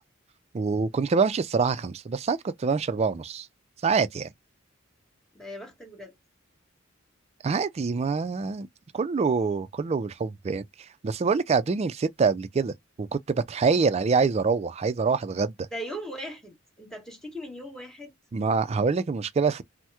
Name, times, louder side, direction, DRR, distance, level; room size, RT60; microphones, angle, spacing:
voice 1, 0.5-3.5 3.8-4.3 7.4-8.7 8.9-10.6 11.0-15.5 18.3-19.6, right 5 dB, 30° right, 0.3 m, -25 dB
voice 2, 5.3-6.1 15.7-18.1, equal, 5° left, 1.2 m, -39 dB
2.9 x 2.0 x 3.4 m
head